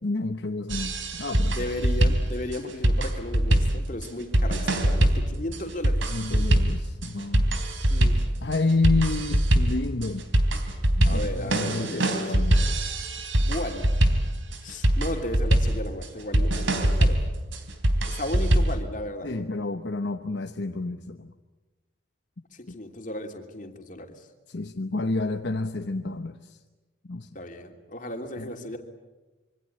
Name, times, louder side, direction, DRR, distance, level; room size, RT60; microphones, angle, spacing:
voice 1, 0.0-1.7 6.1-7.6 8.4-10.2 11.0-12.6 19.2-21.3 22.7-22.8 24.5-26.6 27.1-27.3 28.4-28.5, left 3 dB, 65° left, 6 dB, 1.0 m, -29 dB
sound 1, 0.7-18.8, right 1 dB, 90° right, 3.4 m, -23 dB
voice 2, 1.5-6.6 7.9-8.2 11.0-12.7 13.4-13.9 14.6-17.2 18.1-19.3 22.5-24.3 27.3-28.8, left 1 dB, 40° left, 4 dB, 3.1 m, -35 dB
26.5 x 24.5 x 8.8 m, 1.2 s
head